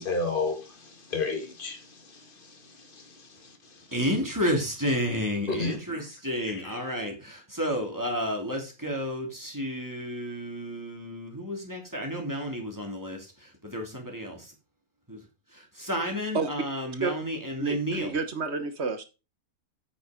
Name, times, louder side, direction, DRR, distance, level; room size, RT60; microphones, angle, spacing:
voice 1, 0.0-3.9 5.5-6.0 6.5-6.7, left 3 dB, 35° left, 1.9 m, -33 dB
voice 2, 3.9-14.4 15.1-15.2 15.5-18.1, equal, 10° right, 2.8 m, -31 dB
voice 3, 17.6-19.0, right 4 dB, 50° right, 1.4 m, -30 dB
8.5 x 6.4 x 5.0 m
omnidirectional pair, 1.6 m